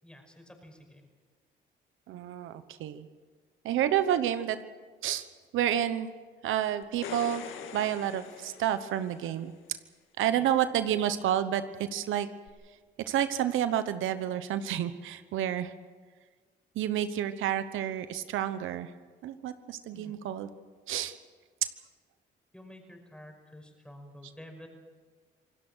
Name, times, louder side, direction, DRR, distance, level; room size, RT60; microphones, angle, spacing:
voice 1, 0.0-1.1 10.3-10.5 19.9-20.2 22.5-24.7, left 1 dB, 5° left, 3 dB, 5.5 m, -50 dB
voice 2, 2.1-3.1 3.6-4.6 5.0-5.3 5.5-6.1 6.4-7.4 7.7-9.8 10.2-12.3 13.0-15.7 16.7-18.9 19.2-20.5 20.9-21.1, right 10 dB, 85° right, 11 dB, 1.0 m, -30 dB
sound 1, 6.8-9.4 12.5-12.6, left 7 dB, 90° left, 2.0 m, -43 dB
27.0 x 18.5 x 6.3 m, 1.5 s
cardioid pair, 90°, 20 cm